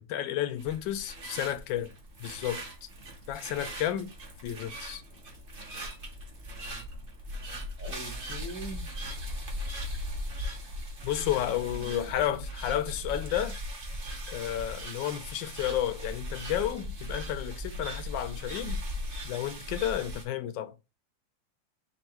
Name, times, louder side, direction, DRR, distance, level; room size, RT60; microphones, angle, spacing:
voice 1, 0.0-1.9 2.2-2.6 3.3-4.1 4.4-5.0 11.0-13.6 14.3-18.8 19.2-20.8, left 11 dB, 80° left, 1.3 m, -32 dB
sound 1, 0.6-20.2, equal, 35° right, 1.0 m, -39 dB
voice 2, 7.8-8.9 11.6-12.1, equal, 20° left, 0.6 m, -43 dB
4.4 x 2.5 x 4.3 m
omnidirectional pair, 2.1 m